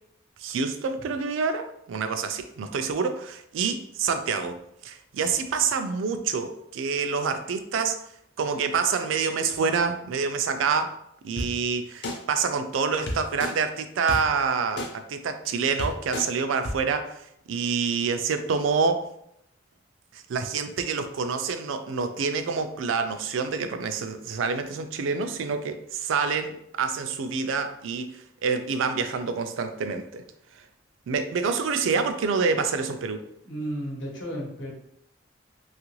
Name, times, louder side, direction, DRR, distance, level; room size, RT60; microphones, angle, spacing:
voice 1, 0.4-8.0 8.4-10.9 11.2-17.2 17.5-19.0 20.1-30.2 31.1-33.2, right 5 dB, 85° right, 8 dB, 0.4 m, -27 dB
sound 1, 11.4-11.5 12.0-12.2 13.1-13.5 14.1-14.2 14.8-14.9 15.4-15.5 15.8-16.2 16.6-16.7, left 1 dB, 60° left, 0.6 m, -29 dB
voice 2, 33.4-34.7, right 1 dB, 75° left, -1 dB, 0.9 m, -33 dB
2.9 x 2.4 x 3.0 m, 0.76 s
head